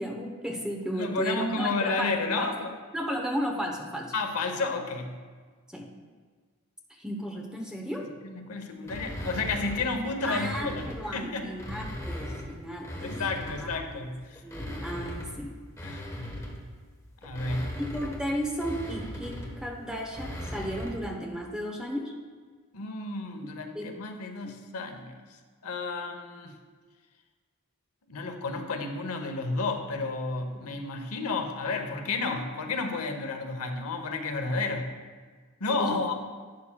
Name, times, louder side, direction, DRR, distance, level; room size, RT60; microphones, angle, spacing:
voice 1, 0.0-2.5 2.9-4.1 5.7-5.9 7.0-8.1 10.2-13.2 13.6-13.7 14.4-15.6 17.8-22.1 23.7-24.0 24.4-24.5 30.5-30.7 35.7-36.1, equal, 5° right, 1 dB, 0.8 m, -34 dB
voice 2, 1.0-2.7 4.1-5.2 8.2-10.9 11.1-11.5 13.0-14.4 15.8-16.1 17.2-17.8 22.7-25.2 25.6-26.5 28.1-34.9 35.6-36.1, left 3 dB, 90° left, 5 dB, 0.8 m, -31 dB
sound 1, 8.8-11.1 11.5-13.9 14.3-21.1, equal, 15° left, 1.1 m, -39 dB
11.5 x 8.6 x 2.2 m, 1.5 s
head